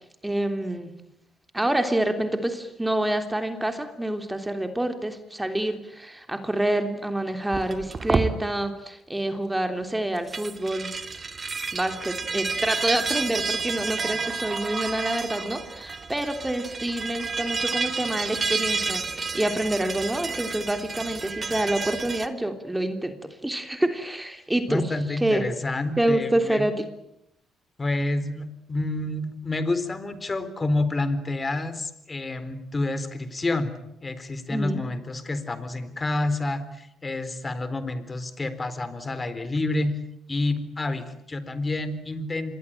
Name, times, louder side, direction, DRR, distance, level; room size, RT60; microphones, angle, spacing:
voice 1, 0.2-0.9 1.5-11.0 11.7-24.8 25.2-25.4 26.0-26.8 34.5-34.8, right 1 dB, 10° right, 7 dB, 3.2 m, -27 dB
sound 1, 7.5-8.3 10.2-22.3, right 4 dB, 35° right, 2.3 m, -30 dB
voice 2, 24.7-26.7 27.8-40.0 40.3-42.6, left 2 dB, 25° left, 13 dB, 4.0 m, -29 dB
26.5 x 21.5 x 9.1 m, 0.79 s
cardioid pair, 80°, 0 cm